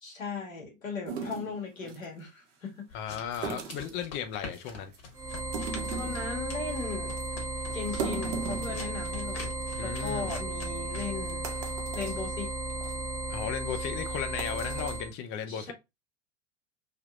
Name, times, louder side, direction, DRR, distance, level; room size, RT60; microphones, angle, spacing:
voice 1, 0.0-3.0 5.9-7.1 7.7-9.5 9.8-11.4 11.9-12.5 15.5-15.7, left 4 dB, 85° left, 1.6 m, -37 dB
sound 1, 1.1-2.0 3.3-4.0 4.5-5.0 5.4-6.3 6.7-6.8 7.2-7.3 7.7-9.3 9.6-9.7 10.0-10.1 10.8-10.9 11.3-12.2 12.7-12.9 13.4-13.6 14.2-15.0, right 5 dB, 60° right, 1.0 m, -38 dB
sound 2, 2.9-11.2, left 4 dB, 55° left, 1.4 m, -46 dB
voice 2, 2.9-4.9 9.8-10.3 13.3-15.7, left 8 dB, 30° left, 0.5 m, -35 dB
sound 3, 5.1-15.1, right 2 dB, 5° right, 0.8 m, -35 dB
3.4 x 2.8 x 2.3 m
hypercardioid pair, 95°, 39 cm